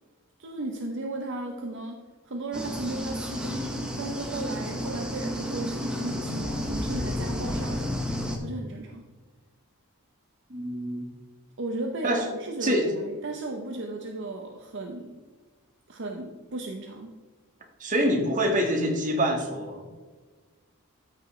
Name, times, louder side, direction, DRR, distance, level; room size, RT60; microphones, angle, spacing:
voice 1, 0.4-8.1 8.4-9.0 11.6-15.2 15.9-17.2, right 2 dB, 55° right, 2 dB, 0.8 m, -35 dB
sound 1, 2.5-8.4, equal, 5° right, 1.0 m, -31 dB
voice 2, 10.5-11.1 12.0-12.2 12.6-12.9 17.8-19.8, equal, 35° right, 1 dB, 1.6 m, -25 dB
13.5 x 6.1 x 3.2 m, 1.4 s
head